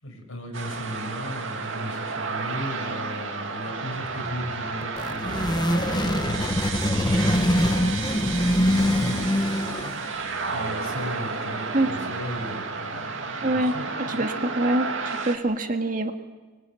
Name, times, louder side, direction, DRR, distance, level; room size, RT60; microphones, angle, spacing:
voice 1, 0.0-10.2 10.5-14.3, equal, 75° left, 3 dB, 6.6 m, -37 dB
sound 1, 0.5-15.4, right 4 dB, 65° right, 2.5 m, -32 dB
sound 2, 2.7-12.7, right 2 dB, 90° right, 4.2 m, -40 dB
sound 3, 4.8-10.1, left 1 dB, 20° left, 1.3 m, -23 dB
voice 2, 13.4-13.7 14.1-16.1, right 1 dB, 40° right, 5 dB, 1.9 m, -25 dB
23.5 x 22.5 x 9.1 m, 1.3 s
head